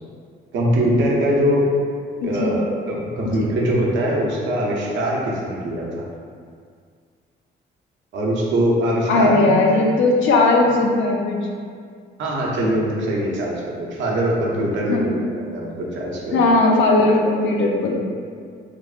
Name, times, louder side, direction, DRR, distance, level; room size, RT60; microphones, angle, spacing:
voice 1, 0.5-1.7 2.2-6.0 8.1-9.8 12.2-16.5, equal, 70° right, -3 dB, 0.6 m, -22 dB
voice 2, 2.2-2.5 3.2-3.3 9.1-11.5 14.9-15.2 16.3-18.0, left 2 dB, 75° left, 0 dB, 0.5 m, -18 dB
3.1 x 2.0 x 2.3 m, 2.1 s
cardioid pair, 90°, 20 cm